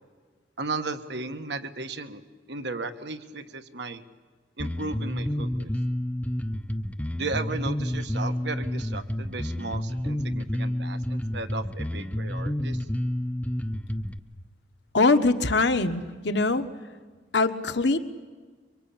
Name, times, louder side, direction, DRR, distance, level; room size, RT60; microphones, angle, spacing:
voice 1, 0.6-2.2 2.5-4.0 4.6-5.7 7.2-12.9, right 3 dB, 65° right, 9 dB, 1.4 m, -35 dB
Bass guitar, 4.6-14.2, left 1 dB, 10° left, 0.8 m, -30 dB
voice 2, 14.9-16.6 17.3-18.0, left 3 dB, 65° left, 8 dB, 1.5 m, -22 dB
26.0 x 24.5 x 8.7 m, 1.4 s
head